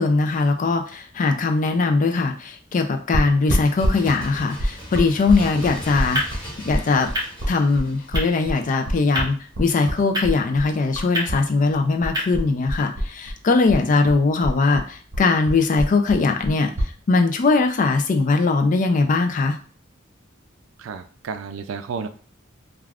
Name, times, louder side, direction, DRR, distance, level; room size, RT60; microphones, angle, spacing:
voice 1, 0.0-6.2 6.7-7.1 7.5-16.7 17.1-19.6, left 3 dB, 40° left, 6 dB, 0.4 m, -20 dB
sound 1, 3.1-11.4 11.7-13.4 13.7-16.9, equal, 70° right, 0.8 m, -26 dB
Bird, 3.5-9.0 9.3-9.4, equal, 25° left, 1.0 m, -38 dB
sound 2, 5.6-12.3, equal, 20° right, 0.8 m, -32 dB
voice 2, 20.8-22.1, right 5 dB, 90° right, 10 dB, 0.3 m, -32 dB
3.3 x 2.3 x 2.3 m, 0.41 s
head